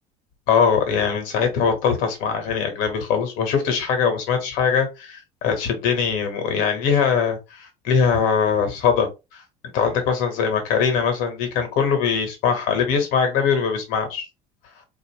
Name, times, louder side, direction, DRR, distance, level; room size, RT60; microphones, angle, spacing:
voice 1, 0.5-9.4 9.7-14.3, left 6 dB, 65° left, 1.6 m, -22 dB
4.5 x 2.7 x 3.2 m
cardioid pair, 175°, 15 cm